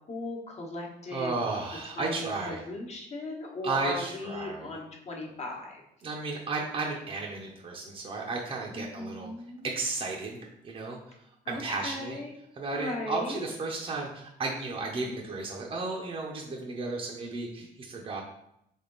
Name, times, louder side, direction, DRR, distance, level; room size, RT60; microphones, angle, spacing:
voice 1, 0.1-1.3 2.0-5.8 8.7-9.6 11.4-12.3 12.7-13.5, left 2 dB, 40° left, 0 dB, 1.2 m, -37 dB
voice 2, 1.1-2.6 3.6-4.7 6.0-9.3 9.6-10.4 10.6-11.0 11.5-12.2 12.5-18.2, right 3 dB, 35° right, -1 dB, 0.7 m, -34 dB
3.7 x 3.6 x 3.9 m, 0.78 s
cardioid pair, 110°, 17 cm